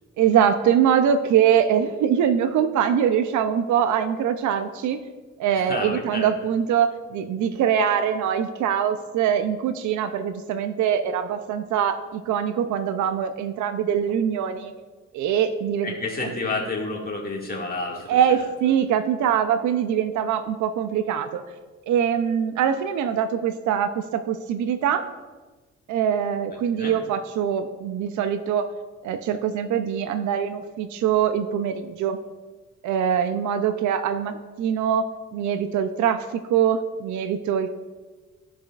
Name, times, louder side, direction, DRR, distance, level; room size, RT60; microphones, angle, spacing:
voice 1, 0.2-5.0 5.4-14.7 15.1-15.9 18.1-21.4 21.9-25.1 25.9-28.7 29.0-32.2 32.8-37.7, right 8 dB, 70° right, 9 dB, 0.6 m, -23 dB
voice 2, 5.6-6.3 15.8-18.4 26.8-26.9, left 3 dB, 30° left, -1 dB, 2.0 m, -30 dB
13.5 x 4.9 x 2.4 m, 1.3 s
cardioid pair, 90°, 30 cm